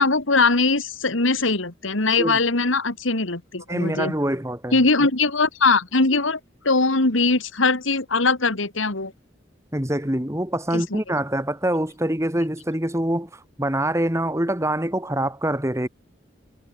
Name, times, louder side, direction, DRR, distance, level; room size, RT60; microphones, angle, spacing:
voice 1, 0.0-4.1 4.7-6.4 6.6-9.1 10.7-10.8, left 3 dB, 80° left, 2.6 m, -21 dB
voice 2, 3.7-4.8 9.7-15.9, right 1 dB, 15° right, 2.4 m, -25 dB
head